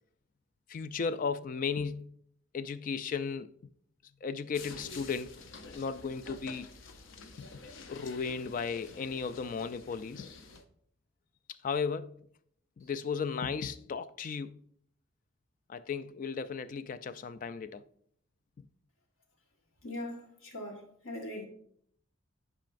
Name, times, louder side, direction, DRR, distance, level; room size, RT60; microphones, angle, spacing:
voice 1, 0.7-2.1 2.5-3.5 4.2-6.7 7.4-7.5 7.9-10.3 11.6-12.2 12.8-14.6 15.7-17.8, left 5 dB, 40° left, 0.3 m, -35 dB
sound 1, 4.5-10.6, left 3 dB, 70° left, 0.6 m, -49 dB
voice 2, 19.8-21.5, left 1 dB, 90° left, 1.6 m, -41 dB
10.5 x 4.8 x 2.5 m
head